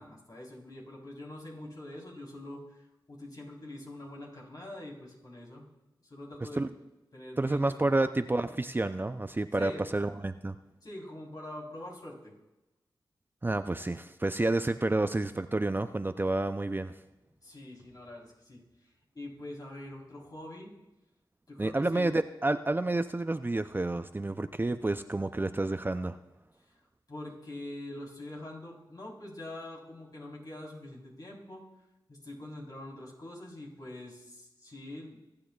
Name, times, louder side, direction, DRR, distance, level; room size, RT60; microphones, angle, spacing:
voice 1, 0.0-5.7 6.0-6.7 7.1-7.9 9.5-9.8 10.8-12.3 17.4-18.7 19.1-20.7 21.5-22.1 26.7-26.8 27.1-31.6 32.1-35.2, left 1 dB, 50° left, -3 dB, 3.7 m, -44 dB
voice 2, 7.4-10.6 13.4-16.9 21.6-26.2, right 2 dB, 25° right, 10 dB, 0.5 m, -29 dB
25.0 x 8.7 x 2.4 m, 1.0 s
cardioid pair, 45°, 9 cm